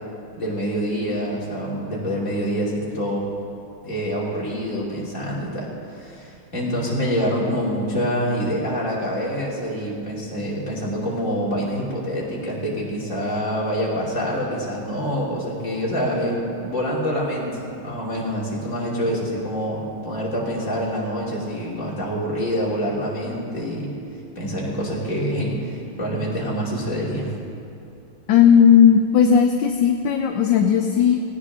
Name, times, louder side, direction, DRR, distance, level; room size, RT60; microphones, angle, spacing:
voice 1, 0.4-3.3 3.8-23.9 24.3-27.3, equal, 35° left, -5 dB, 3.3 m, -26 dB
voice 2, 28.3-31.2, left 8 dB, 70° left, 5 dB, 1.3 m, -15 dB
18.0 x 17.5 x 3.7 m, 2.6 s
omnidirectional pair, 2.3 m